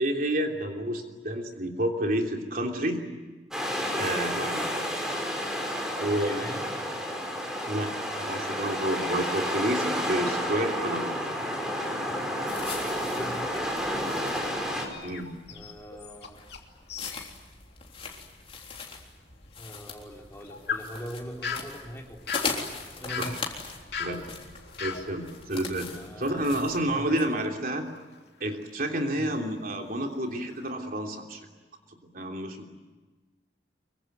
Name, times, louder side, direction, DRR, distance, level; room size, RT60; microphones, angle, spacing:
voice 1, 0.0-3.0 3.9-4.7 6.0-6.5 7.6-7.9 8.2-11.1 15.0-15.3 23.2-23.4 24.0-24.3 24.8-25.9 26.2-27.9 28.4-31.5 32.0-32.7, right 1 dB, 55° right, 3 dB, 3.2 m, -29 dB
sound 1, 3.5-14.9, equal, 5° right, 4.8 m, -31 dB
voice 2, 6.1-7.0 12.9-13.7 15.5-16.4 19.6-22.2 23.0-23.4 25.9-27.3 29.1-29.3, equal, 15° left, 0 dB, 4.3 m, -41 dB
sound 2, 12.5-27.2, left 4 dB, 35° left, 3.7 m, -40 dB
sound 3, 14.7-16.6 16.9-17.3 17.7-17.8 18.4-18.5 20.1-26.8 27.2-28.7 29.2-29.5 30.0-30.7, left 6 dB, 65° left, 3.2 m, -40 dB
25.0 x 24.0 x 9.4 m, 1.3 s
head